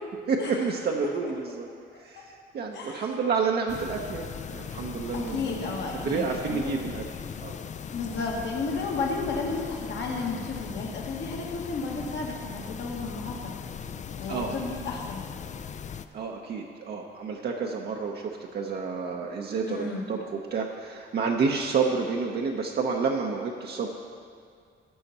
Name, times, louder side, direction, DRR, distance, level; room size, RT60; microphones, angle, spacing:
voice 1, 0.3-1.7 2.0-7.0 7.4-7.6 8.2-8.3 14.3-14.6 16.1-23.9, right 5 dB, 55° right, 0 dB, 0.8 m, -30 dB
sound 1, 3.7-16.1, left 7 dB, 35° left, 0.4 m, -39 dB
voice 2, 5.1-6.7 7.9-13.5 14.2-15.2 19.6-20.0, left 3 dB, 65° left, -1 dB, 1.7 m, -33 dB
13.5 x 5.6 x 4.2 m, 2.2 s
cardioid pair, 90°, 20 cm